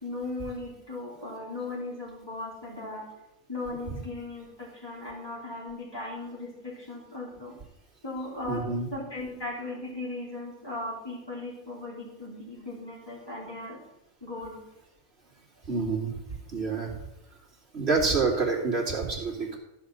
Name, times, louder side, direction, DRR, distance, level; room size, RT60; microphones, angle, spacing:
voice 1, 0.0-3.0 3.5-7.5 8.0-8.6 8.9-13.8 14.2-14.6, left 2 dB, 15° left, -6 dB, 3.4 m, -37 dB
voice 2, 8.5-8.9 15.7-16.1 16.5-16.9 17.7-19.6, right 4 dB, 50° right, -1 dB, 2.8 m, -27 dB
13.5 x 5.1 x 7.4 m, 0.93 s
omnidirectional pair, 1.4 m